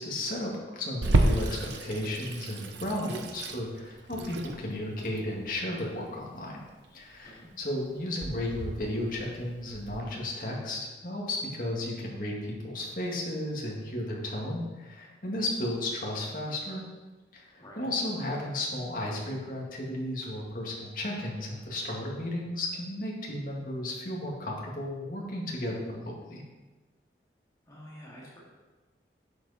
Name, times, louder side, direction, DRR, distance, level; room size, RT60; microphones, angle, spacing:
voice 1, 0.0-6.6 6.9-16.8 17.3-26.4, left 1 dB, 50° left, -2 dB, 2.1 m, -34 dB
Water tap faucet / Sink (filling or washing), 1.0-10.0, right 2 dB, 85° right, 0.8 m, -32 dB
voice 2, 27.7-28.4, equal, 20° left, -6 dB, 2.4 m, -48 dB
11.0 x 7.3 x 4.2 m, 1.2 s
head